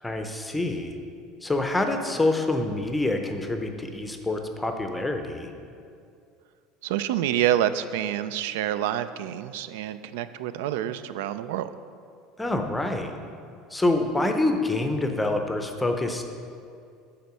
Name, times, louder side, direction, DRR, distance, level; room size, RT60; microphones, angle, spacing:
voice 1, 0.0-1.0 1.4-5.5 12.4-13.1 13.7-16.2, left 2 dB, 5° left, 5 dB, 0.5 m, -26 dB
voice 2, 6.8-11.7, right 11 dB, 90° right, 13 dB, 0.3 m, -27 dB
8.3 x 4.3 x 6.0 m, 2.4 s
cardioid pair, 155°, 0 cm